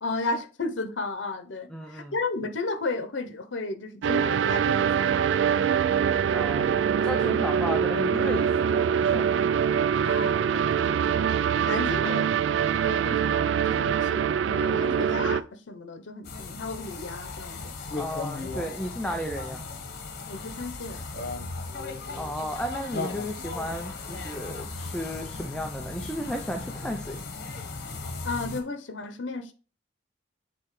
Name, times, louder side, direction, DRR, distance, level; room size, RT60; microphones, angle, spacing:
voice 1, 0.0-5.4 10.0-12.4 12.8-17.7 20.3-21.1 28.2-29.5, left 3 dB, 85° left, 0.8 m, -34 dB
voice 2, 1.7-2.1 6.3-6.7 7.0-9.5 18.0-19.6 22.2-27.2, equal, 5° left, 0.5 m, -34 dB
sound 1, 4.0-15.4, right 8 dB, 75° right, 0.3 m, -24 dB
sound 2, 16.2-28.6, left 3 dB, 60° left, 1.1 m, -36 dB
7.8 x 3.8 x 3.1 m
head